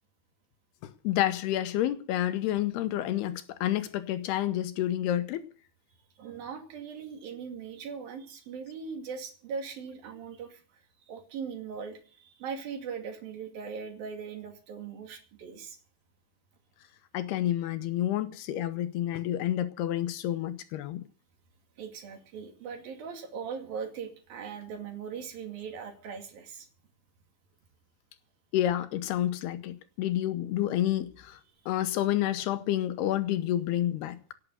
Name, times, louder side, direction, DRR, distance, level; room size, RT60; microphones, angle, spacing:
voice 1, 0.8-5.5 17.1-21.0 28.5-31.4 31.7-34.3, left 12 dB, 80° left, 2.8 m, -29 dB
voice 2, 6.2-10.6 11.1-15.8 21.8-26.7, right 6 dB, 60° right, 4.0 m, -40 dB
17.5 x 9.1 x 7.9 m
omnidirectional pair, 4.9 m